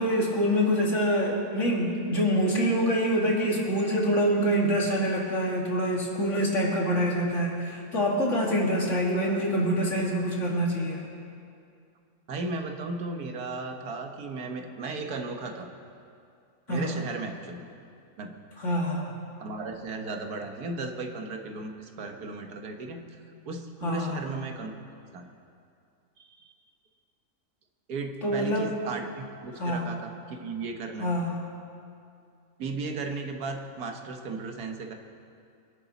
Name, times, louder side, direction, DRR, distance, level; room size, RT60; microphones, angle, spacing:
voice 1, 0.0-11.0 16.7-17.0 18.6-19.1 23.8-24.2 28.2-28.7 29.6-29.9 31.0-31.4, equal, 50° left, -2 dB, 2.5 m, -26 dB
voice 2, 12.3-15.7 16.7-17.7 18.2-18.3 19.4-23.0 23.5-24.7 25.1-25.3 26.2-26.5 27.9-31.1 32.6-34.9, right 3 dB, 90° right, 4 dB, 1.7 m, -35 dB
24.0 x 11.0 x 4.1 m, 2.4 s
omnidirectional pair, 1.6 m